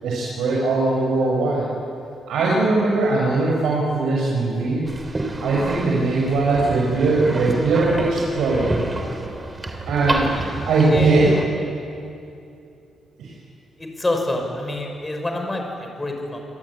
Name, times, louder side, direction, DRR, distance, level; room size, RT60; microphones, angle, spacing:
voice 1, 0.0-1.7 2.3-4.9 5.4-8.7 9.9-10.2 10.7-11.4 13.2-13.3, right 3 dB, 80° right, -4 dB, 6.2 m, -20 dB
sound 1, 4.8-11.5, right 2 dB, 20° right, 3.3 m, -29 dB
voice 2, 13.8-16.4, left 1 dB, 15° left, 3 dB, 5.8 m, -27 dB
27.5 x 20.5 x 9.9 m, 2.6 s
cardioid pair, 115°, 0 cm